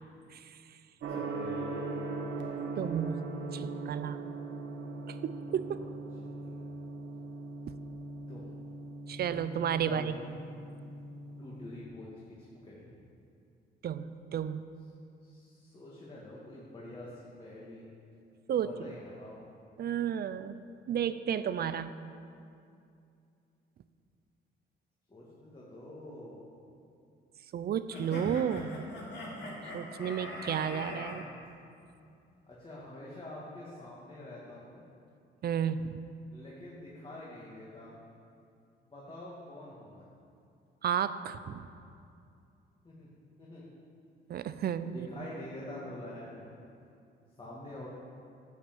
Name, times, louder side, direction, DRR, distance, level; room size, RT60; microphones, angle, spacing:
voice 1, 0.3-0.8 2.8-3.2 3.5-4.2 5.1-5.6 7.7-7.8 9.1-10.1 13.8-14.6 18.5-18.9 19.8-20.6 20.9-21.9 27.5-28.8 29.7-31.3 35.4-36.0 40.8-41.7 44.3-45.2, right 8 dB, 50° right, 13 dB, 0.5 m, -33 dB
Gong, 1.0-11.8, right 3 dB, 70° right, 1.3 m, -40 dB
voice 2, 1.1-2.0 5.5-5.9 6.4-6.5 8.3-8.5 9.9-10.3 11.4-12.1 12.4-13.0 15.2-17.9 18.5-19.4 25.1-26.5 32.5-34.8 36.3-38.0 38.9-40.1 42.8-43.1 43.4-43.7 44.9-46.6 47.4-47.9, left 1 dB, 25° left, -6 dB, 2.0 m, -46 dB
sound 1, 27.9-31.1, left 1 dB, 65° left, 2.7 m, -41 dB
9.9 x 5.8 x 7.5 m, 2.5 s
cardioid pair, 90°, 20 cm